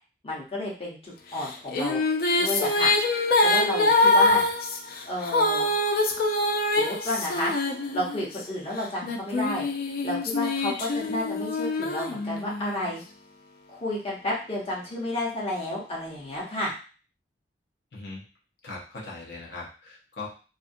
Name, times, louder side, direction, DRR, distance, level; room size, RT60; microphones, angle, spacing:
voice 1, 0.2-2.0 2.4-2.9 3.4-4.4 5.1-5.7 6.7-7.5 7.9-9.7 10.0-13.0 13.7-16.7, left 1 dB, 35° left, -4 dB, 0.8 m, -31 dB
sound 1, 1.4-8.4 9.0-12.8, left 2 dB, 55° left, 0.4 m, -24 dB
voice 2, 17.9-18.2 18.6-20.3, left 3 dB, 75° left, -3 dB, 0.8 m, -40 dB
2.5 x 2.4 x 2.6 m, 0.36 s
head